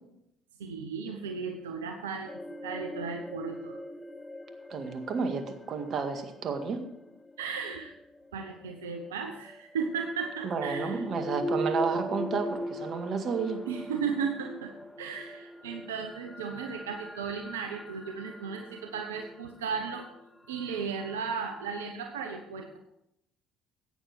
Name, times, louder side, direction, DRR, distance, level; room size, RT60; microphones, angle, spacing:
voice 1, 0.6-2.3 2.6-3.8 7.4-7.9 8.3-11.1 13.7-14.7 15.0-20.1 20.5-22.8, right 6 dB, 90° right, 4 dB, 1.0 m, -35 dB
sound 1, 2.3-8.3 9.5-21.9, equal, 15° left, 0.9 m, -40 dB
voice 2, 4.7-6.8 10.4-13.6, right 5 dB, 50° right, 7 dB, 1.9 m, -31 dB
14.5 x 9.3 x 4.7 m, 0.81 s
hypercardioid pair, 60°, 0 cm